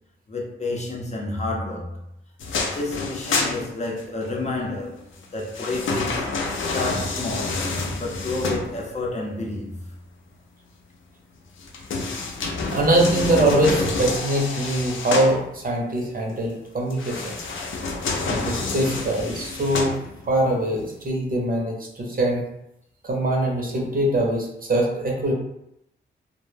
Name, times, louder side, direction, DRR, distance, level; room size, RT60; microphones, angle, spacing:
voice 1, 0.3-2.0 2.6-6.3 6.6-9.7, left 2 dB, 35° left, 0.6 m, -30 dB
sound 1, 2.4-4.3 5.1-9.1 11.6-15.4 16.9-20.4 20.9-21.0, left 3 dB, 80° left, 0.5 m, -28 dB
voice 2, 12.7-17.3 18.3-19.9 20.2-22.4 23.0-25.3, right 1 dB, 45° right, 0.7 m, -23 dB
2.1 x 2.1 x 3.2 m
cardioid pair, 85°, 20 cm